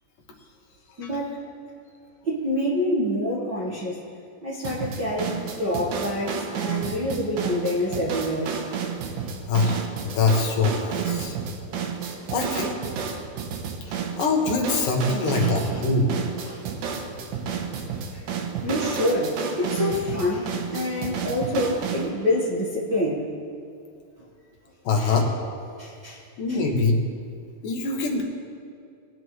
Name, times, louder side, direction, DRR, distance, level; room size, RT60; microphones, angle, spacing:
voice 1, 1.0-1.4 2.2-4.0 4.4-8.6 11.7-11.9 13.8-14.1 15.4-15.8 16.4-16.6 18.1-18.3 18.6-23.3 24.9-25.2 25.8-26.2 26.5-26.6, left 1 dB, 50° right, -7 dB, 1.3 m, -27 dB
sound 1, 4.6-22.1, right 6 dB, 70° right, 2.3 m, -31 dB
voice 2, 9.5-11.4 12.3-12.7 14.2-16.1 24.8-25.3 26.4-27.0 27.6-28.2, left 3 dB, 70° left, 1 dB, 2.7 m, -23 dB
21.0 x 9.9 x 3.2 m, 2.4 s
omnidirectional pair, 4.1 m